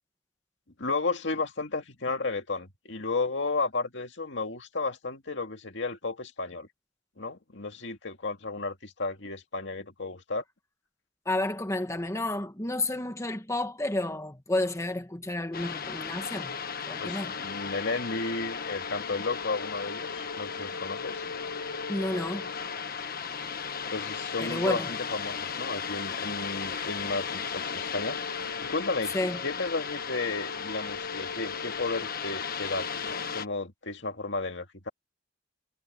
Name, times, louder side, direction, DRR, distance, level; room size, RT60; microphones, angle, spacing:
voice 1, 0.8-6.7 7.2-10.4 17.0-21.2 23.9-28.2 28.6-34.9, left 3 dB, 65° left, 2.3 m, -33 dB
voice 2, 11.2-16.6 16.8-17.3 21.9-22.5 24.4-24.9 29.1-29.4, left 1 dB, 15° left, 1.3 m, -31 dB
sound 1, 15.5-33.4, left 6 dB, 50° left, 1.4 m, -35 dB
head